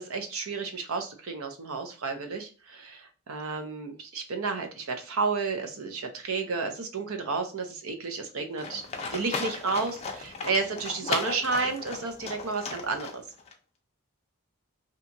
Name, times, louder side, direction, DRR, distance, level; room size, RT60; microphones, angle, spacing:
voice 1, 0.0-8.8 9.1-13.2, right 4 dB, 75° right, 5 dB, 0.6 m, -31 dB
Livestock farm animals working animals, 8.6-13.5, left 4 dB, 30° left, 0.4 m, -36 dB
2.8 x 2.3 x 2.6 m, 0.35 s
head